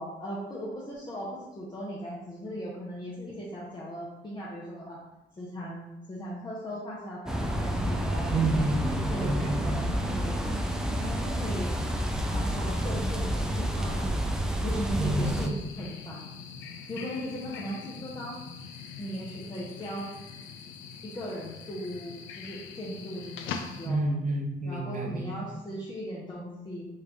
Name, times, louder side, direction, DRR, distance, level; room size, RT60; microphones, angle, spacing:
voice 1, 0.0-5.0 5.4-8.3 9.1-10.4 11.0-11.8 12.3-14.4 14.6-16.2 16.9-18.4 19.0-20.1 21.0-24.1 24.6-26.9, equal, 20° left, -6 dB, 0.7 m, -38 dB
sound 1, 7.3-15.5, equal, 5° right, 0.3 m, -29 dB
voice 2, 8.3-9.8 15.0-15.6 23.9-25.5, right 2 dB, 40° right, 1 dB, 0.7 m, -29 dB
sound 2, 15.2-23.9, left 6 dB, 80° left, 0.4 m, -43 dB
3.2 x 2.5 x 3.3 m, 0.97 s
cardioid pair, 90°, 20 cm